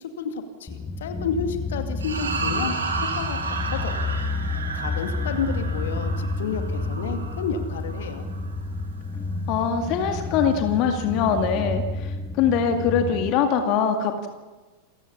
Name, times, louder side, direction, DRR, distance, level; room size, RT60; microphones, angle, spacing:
voice 1, 0.2-2.7 3.1-4.1 4.8-8.3, left 6 dB, 60° left, 6 dB, 2.3 m, -31 dB
sound 1, 0.7-13.3, left 2 dB, 10° left, 1.7 m, -30 dB
sound 2, 2.0-8.5, right 4 dB, 70° right, 2.9 m, -32 dB
voice 2, 9.5-14.3, left 7 dB, 40° left, 5 dB, 2.0 m, -23 dB
28.5 x 15.0 x 7.1 m, 1.2 s
figure-of-eight pair, 90°, 0 cm